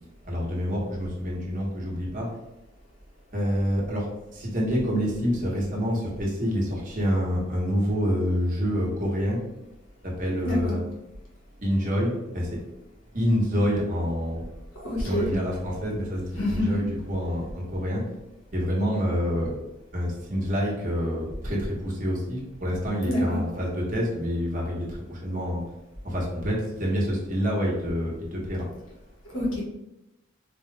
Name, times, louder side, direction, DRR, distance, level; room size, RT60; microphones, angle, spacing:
voice 1, 0.3-2.3 3.3-4.0 4.3-9.4 10.0-10.8 11.6-12.6 13.1-14.4 15.0-18.0 18.5-19.5 19.9-25.6 26.0-28.7, equal, 40° right, -4 dB, 1.2 m, -27 dB
voice 2, 10.4-10.7 14.8-15.3 16.4-16.8 23.1-23.4 29.3-29.6, left 1 dB, 70° left, -4 dB, 1.4 m, -26 dB
4.5 x 2.4 x 3.3 m, 0.93 s
head